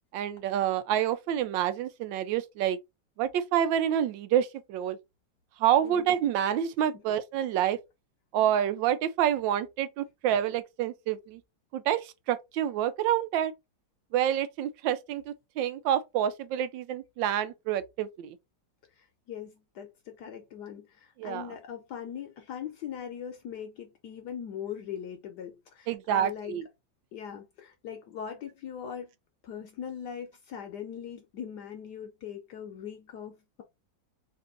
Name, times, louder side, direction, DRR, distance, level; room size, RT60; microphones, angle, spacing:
voice 1, 0.1-2.8 3.2-5.0 5.6-7.8 8.3-11.4 11.7-13.5 14.1-18.4 21.2-21.5 25.9-26.7, right 10 dB, 85° right, 1.3 m, -28 dB
voice 2, 19.0-26.6 27.1-29.1 29.4-33.6, left 8 dB, 70° left, 1.1 m, -40 dB
3.4 x 2.6 x 3.8 m
omnidirectional pair, 2.0 m